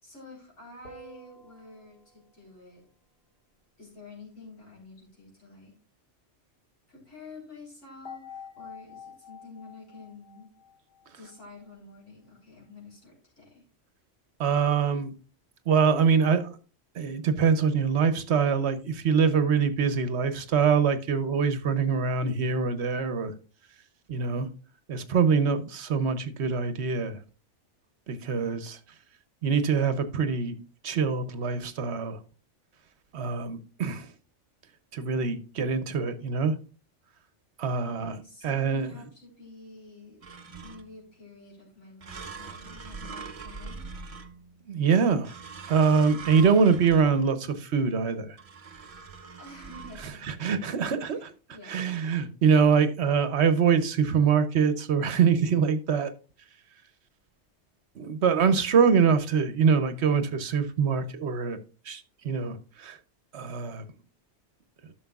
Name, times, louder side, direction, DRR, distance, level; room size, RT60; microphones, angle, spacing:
voice 1, 0.0-2.8 3.8-5.7 6.9-10.5 11.1-13.6 37.8-40.2 40.6-43.9 49.4-50.3 51.0-51.9, left 3 dB, 80° left, 4.2 m, -49 dB
sound 1, 0.8-2.4 8.0-11.4, left 4 dB, 55° left, 1.8 m, -47 dB
voice 2, 14.4-15.1 15.7-16.5 16.9-23.3 24.1-24.5 24.9-27.2 28.1-28.8 29.4-30.5 30.8-32.2 33.1-34.1 34.9-36.5 37.6-38.2 38.4-38.9 44.7-45.3 45.7-48.4 50.2-51.3 51.7-56.1 58.0-61.6 61.9-63.0 63.3-63.9, right 6 dB, 65° right, 1.0 m, -24 dB
sound 2, 40.2-41.0 42.0-44.7 45.2-47.5 48.4-50.1, right 4 dB, 35° right, 0.6 m, -42 dB
13.0 x 6.3 x 2.3 m
omnidirectional pair, 1.2 m